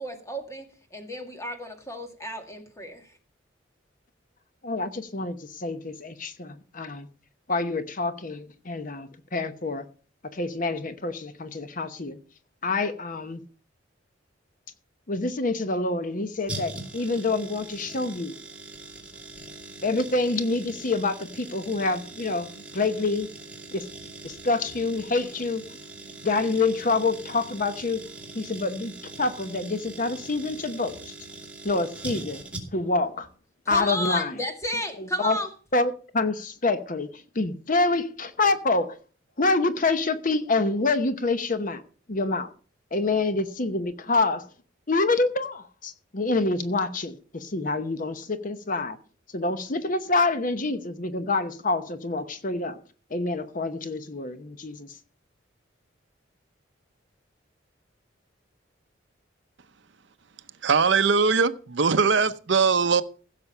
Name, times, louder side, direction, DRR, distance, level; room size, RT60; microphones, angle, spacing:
voice 1, 0.0-3.1 33.7-35.5, equal, 15° left, 2.1 m, -33 dB
voice 2, 4.6-7.1 7.5-9.8 10.3-12.2 12.6-13.4 15.1-18.4 19.8-23.3 23.7-23.9 24.2-25.6 26.2-28.0 28.3-28.9 29.2-31.1 31.6-32.4 32.7-33.3 33.7-34.3 35.0-35.4 35.7-37.1 37.3-39.0 39.4-41.8 42.1-42.5 42.9-44.4 44.9-49.0 49.3-52.8 53.1-54.9, left 3 dB, 45° left, 0.9 m, -27 dB
sound 1, 16.5-33.0 33.2-33.3, right 2 dB, 5° right, 2.6 m, -42 dB
voice 3, 60.6-63.0, right 5 dB, 65° right, 0.7 m, -21 dB
16.0 x 6.8 x 5.5 m
head